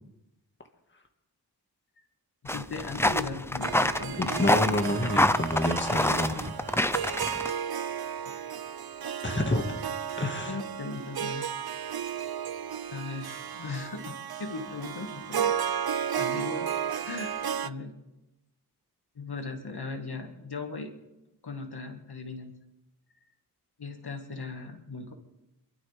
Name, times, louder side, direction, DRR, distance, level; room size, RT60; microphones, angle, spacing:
voice 1, 2.4-4.5 8.2-8.4 10.4-11.5 12.9-15.5 16.1-16.7 17.0-17.4 17.6-17.9 19.2-20.9 21.4-22.5 23.8-25.1, left 3 dB, 70° left, 4 dB, 2.1 m, -38 dB
sound 1, 2.5-7.5, left 1 dB, 5° left, 0.6 m, -26 dB
Harp, 3.6-17.7, right 8 dB, 65° right, 0.7 m, -34 dB
voice 2, 4.2-6.5 9.2-9.8 10.2-10.6, left 1 dB, 30° left, 4 dB, 1.9 m, -28 dB
27.5 x 12.5 x 3.5 m, 0.92 s
wide cardioid pair, 60°, 40 cm